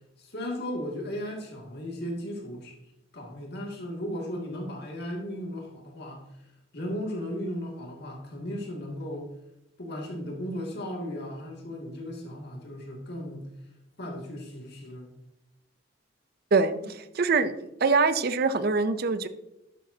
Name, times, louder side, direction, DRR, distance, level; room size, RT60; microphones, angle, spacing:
voice 1, 0.2-2.8 3.1-6.3 6.7-9.3 9.8-13.5 14.0-15.1, equal, 55° left, 0 dB, 2.4 m, -36 dB
voice 2, 17.2-19.3, right 4 dB, 50° right, 13 dB, 0.5 m, -24 dB
11.5 x 8.0 x 2.8 m, 0.90 s
head